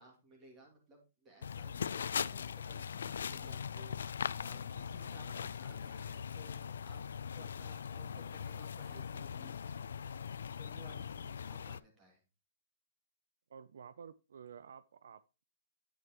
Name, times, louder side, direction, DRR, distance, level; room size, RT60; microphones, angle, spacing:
voice 1, 0.0-7.0 7.3-12.2, right 1 dB, 20° right, 2.3 m, -59 dB
sound 1, 1.4-11.8, left 7 dB, 90° left, 0.3 m, -40 dB
sound 2, 7.3-10.5, left 4 dB, 5° left, 1.9 m, -75 dB
voice 2, 13.5-15.5, right 7 dB, 80° right, 0.4 m, -52 dB
8.8 x 6.5 x 2.9 m
hypercardioid pair, 160°, 0 cm